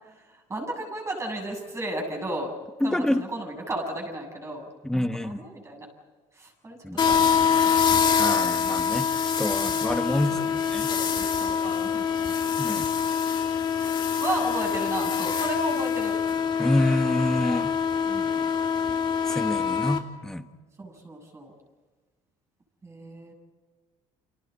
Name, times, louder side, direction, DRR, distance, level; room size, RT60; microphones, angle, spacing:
voice 1, 0.0-2.5 2.8-5.9 6.3-8.0 9.6-9.9 10.3-10.6 10.9-12.4 13.7-16.2 18.1-18.5 20.8-21.5 22.8-23.3, right 1 dB, 20° right, 2 dB, 7.9 m, -35 dB
voice 2, 2.8-3.2 4.8-5.4 6.8-7.0 8.2-9.1 9.4-10.9 12.6-12.9 16.6-17.7 19.3-20.5, left 1 dB, 5° left, 8 dB, 1.4 m, -27 dB
sound 1, 7.0-20.0, left 7 dB, 35° left, 2.6 m, -25 dB
30.0 x 26.5 x 4.3 m, 1.3 s
cardioid pair, 120°, 13 cm